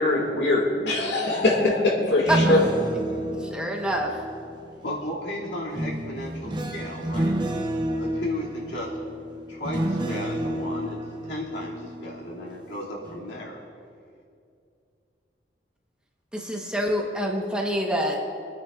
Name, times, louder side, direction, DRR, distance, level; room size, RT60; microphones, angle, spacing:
voice 1, 0.0-2.6, left 2 dB, 70° left, 0 dB, 2.0 m, -22 dB
sound 1, 2.1-5.0 5.7-12.7 13.0-13.4, right 1 dB, 25° right, 0.8 m, -30 dB
voice 2, 3.1-4.1 16.3-18.3, equal, 5° right, 0 dB, 1.1 m, -26 dB
voice 3, 4.8-7.3 8.0-8.9 9.5-11.0 11.2-13.6, left 1 dB, 85° left, -4 dB, 2.4 m, -34 dB
26.5 x 9.4 x 2.4 m, 2.4 s
head